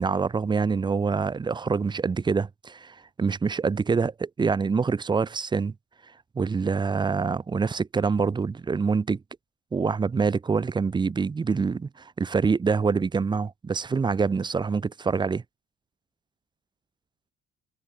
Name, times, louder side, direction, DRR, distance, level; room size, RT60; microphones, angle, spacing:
voice 1, 0.0-5.7 6.4-9.2 9.7-15.4, right 5 dB, 25° right, 2.2 m, -25 dB
cardioid pair, 110°, 17 cm